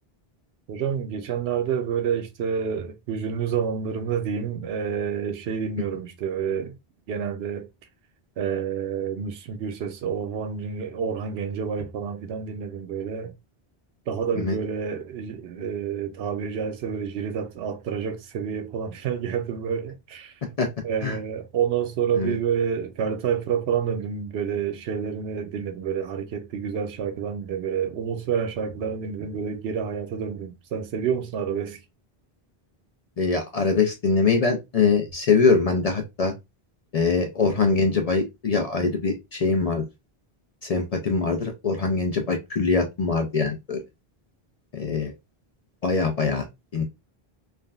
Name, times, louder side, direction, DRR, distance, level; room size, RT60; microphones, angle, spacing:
voice 1, 0.7-6.8 7.1-7.7 8.4-13.3 14.1-20.3 20.8-31.8, right 7 dB, 85° right, 0.8 m, -28 dB
voice 2, 33.2-36.3 36.9-39.9 40.6-43.8 44.7-45.1 45.8-46.5 46.7-46.8, left 4 dB, 50° left, 0.4 m, -23 dB
3.4 x 2.1 x 2.2 m
omnidirectional pair, 1.0 m